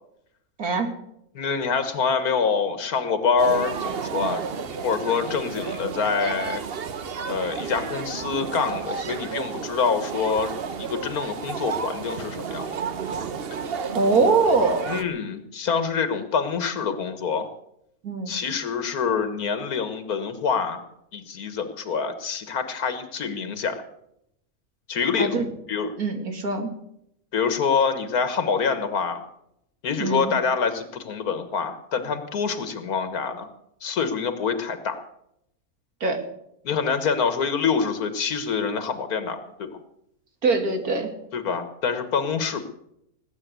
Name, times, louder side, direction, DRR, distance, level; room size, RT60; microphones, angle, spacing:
voice 1, 0.6-0.9 13.9-14.9 18.0-18.3 25.2-25.4 26.0-26.7 30.0-30.3 36.0-36.2 40.4-41.1, right 4 dB, 90° right, 5 dB, 2.9 m, -22 dB
voice 2, 1.4-4.4 4.8-6.6 7.3-10.5 10.8-12.7 14.9-17.5 18.3-20.8 21.1-23.8 24.9-25.3 25.7-25.9 27.3-29.3 29.8-33.5 33.8-35.0 36.6-39.8 41.3-42.6, left 5 dB, 90° left, 10 dB, 1.8 m, -26 dB
sound 1, 3.4-15.0, right 6 dB, 45° right, 1.1 m, -32 dB
19.5 x 8.7 x 8.1 m, 0.77 s
omnidirectional pair, 1.5 m